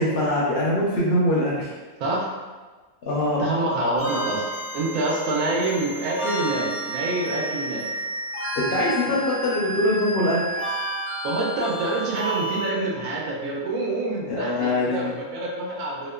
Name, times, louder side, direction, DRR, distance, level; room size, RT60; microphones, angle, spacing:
voice 1, 0.0-1.7 3.1-3.4 8.7-10.4 14.3-15.1, left 1 dB, 65° left, -6 dB, 0.6 m, -23 dB
voice 2, 3.4-4.4 4.7-7.9 11.2-16.1, right 2 dB, 85° right, -3 dB, 1.0 m, -26 dB
sound 1, 4.0-12.7, right 1 dB, 65° right, 1.2 m, -31 dB
2.9 x 2.0 x 2.2 m, 1.3 s
omnidirectional pair, 1.4 m